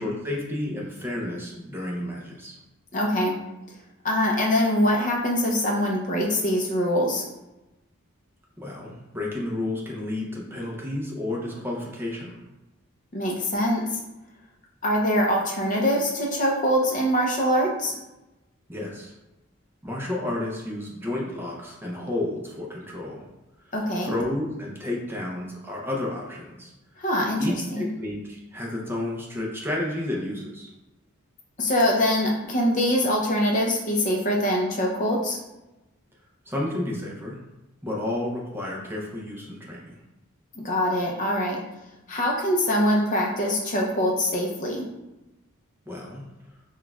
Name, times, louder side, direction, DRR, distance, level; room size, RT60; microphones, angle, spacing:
voice 1, 0.0-2.6 8.6-12.5 18.7-19.1 19.8-23.3 23.7-26.7 27.4-30.7 36.5-37.4 37.8-40.0 45.9-46.3, left 1 dB, 10° right, -3 dB, 0.5 m, -31 dB
voice 2, 2.9-3.4 4.0-7.3 13.1-14.0 14.8-17.9 23.7-24.1 27.0-27.8 31.6-35.4 40.6-41.6 42.1-44.8, equal, 35° left, -1 dB, 0.5 m, -23 dB
5.9 x 2.3 x 2.3 m, 0.99 s
head